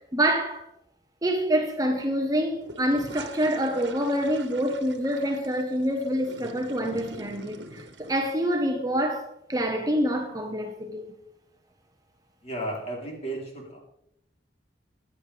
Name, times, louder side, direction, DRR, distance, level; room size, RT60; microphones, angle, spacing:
voice 1, 0.1-0.6 1.2-11.1, equal, 20° right, 1.1 m, -26 dB
sound 1, 2.6-8.3, right 3 dB, 90° right, 1.3 m, -44 dB
voice 2, 12.4-13.8, right 1 dB, 35° left, 3.6 m, -34 dB
15.5 x 10.0 x 3.4 m
head